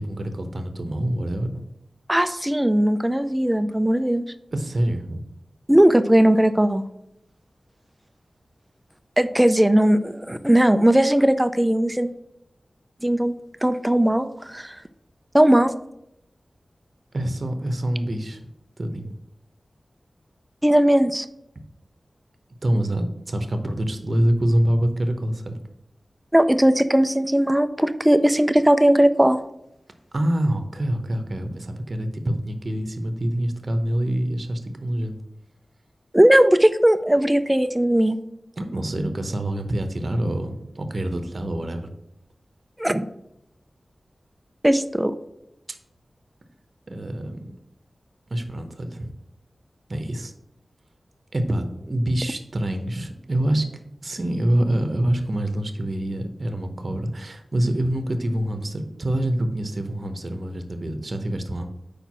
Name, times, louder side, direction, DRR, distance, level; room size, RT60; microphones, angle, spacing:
voice 1, 0.0-1.6 4.5-5.2 17.1-18.5 18.8-19.2 22.6-25.6 30.1-35.2 38.6-41.9 46.9-47.5 48.3-49.1 49.9-50.3 51.3-53.7 54.0-61.7, right 1 dB, 50° right, 6 dB, 0.8 m, -26 dB
voice 2, 2.1-4.2 5.7-6.8 9.2-12.1 13.0-13.3 13.6-14.8 15.3-15.7 20.6-21.3 26.3-29.4 36.1-38.2 42.8-43.1 44.6-45.2, right 1 dB, 10° right, 11 dB, 0.4 m, -18 dB
4.9 x 4.5 x 5.9 m, 0.83 s
wide cardioid pair, 85°, 0 cm